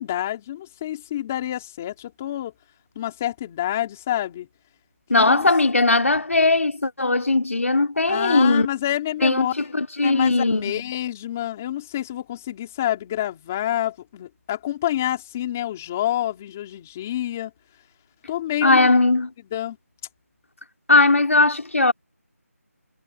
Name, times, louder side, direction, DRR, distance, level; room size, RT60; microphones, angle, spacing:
voice 1, 0.0-2.5 3.0-4.5 5.1-5.5 8.1-9.5 10.0-17.5 18.3-18.9 19.5-19.8, left 12 dB, 10° left, 3.5 m, -28 dB
voice 2, 5.1-8.7 9.2-10.8 18.6-19.3 20.9-21.9, left 2 dB, 60° left, 3.4 m, -19 dB
figure-of-eight pair, 180°, 8 cm